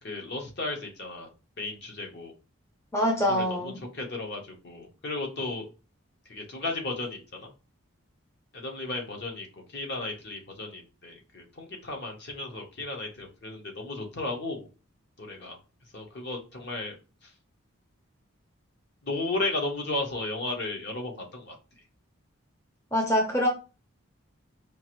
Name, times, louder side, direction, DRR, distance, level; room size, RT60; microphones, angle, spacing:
voice 1, 0.0-1.3 1.6-2.3 3.3-5.7 6.3-7.5 8.5-14.6 15.2-15.6 15.9-17.0 17.2-17.3 19.0-21.6, left 2 dB, 50° left, 2 dB, 0.9 m, -34 dB
voice 2, 2.9-3.7 22.9-23.5, equal, 15° left, 0 dB, 0.6 m, -24 dB
4.5 x 2.5 x 3.0 m, 0.33 s
head